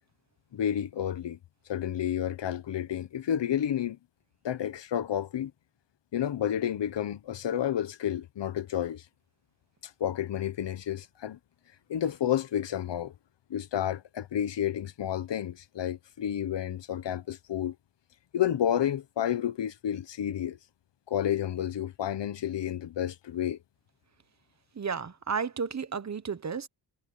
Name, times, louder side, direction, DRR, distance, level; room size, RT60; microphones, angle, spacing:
voice 1, 0.5-1.4 1.7-4.0 4.4-5.5 6.1-9.0 9.8-11.4 11.9-13.1 13.5-17.7 18.3-20.6 21.1-23.6, left 10 dB, 70° left, 1.2 m, -30 dB
voice 2, 24.7-26.7, right 6 dB, 35° right, 1.2 m, -32 dB
wide cardioid pair, 100°, 45 cm